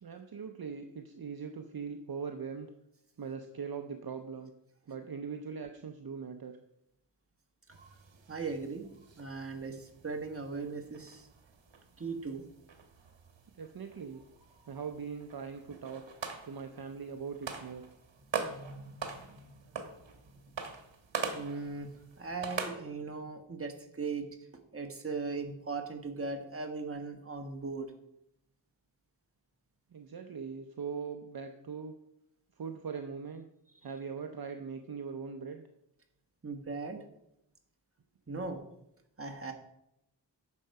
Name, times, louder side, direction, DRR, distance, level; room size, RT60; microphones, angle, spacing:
voice 1, 0.0-2.7 3.2-4.5 4.9-6.6 13.6-14.2 14.7-16.0 16.4-17.8 29.9-31.9 32.6-33.4 33.8-35.6, right 6 dB, 55° right, 6 dB, 0.7 m, -41 dB
sound 1, 7.7-22.7, right 5 dB, 75° right, 1.4 m, -43 dB
voice 2, 8.3-8.9 9.2-11.3 12.0-12.4 18.4-19.8 20.2-20.3 21.3-21.9 22.2-24.3 24.7-27.9 36.4-37.0 38.3-38.6 39.2-39.5, right 4 dB, 30° right, 4 dB, 1.4 m, -39 dB
9.8 x 6.6 x 4.7 m, 0.81 s
wide cardioid pair, 105°, 44 cm